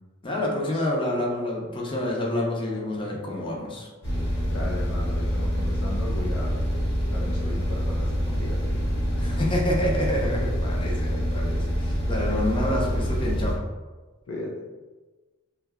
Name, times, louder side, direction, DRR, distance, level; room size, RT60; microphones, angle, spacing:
voice 1, 0.2-3.9 9.2-13.6, left 1 dB, 25° left, -2 dB, 0.6 m, -28 dB
sound 1, 4.0-13.6, equal, 55° left, 1.1 m, -26 dB
voice 2, 4.5-6.6 7.1-8.8 9.1-9.5 14.3-14.6, left 2 dB, 80° left, -2 dB, 0.4 m, -37 dB
2.7 x 2.3 x 3.4 m, 1.3 s
head